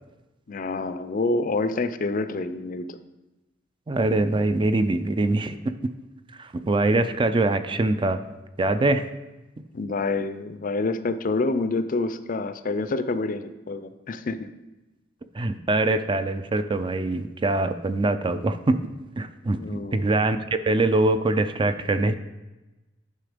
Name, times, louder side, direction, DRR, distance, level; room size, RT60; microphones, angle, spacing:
voice 1, 0.5-3.0 9.7-14.5 19.6-20.1, left 3 dB, 45° left, 12 dB, 0.5 m, -27 dB
voice 2, 3.9-5.6 6.4-8.2 8.6-9.0 15.3-18.8 19.2-22.1, right 2 dB, 25° right, 10 dB, 0.4 m, -23 dB
9.4 x 5.7 x 5.0 m, 1.0 s
head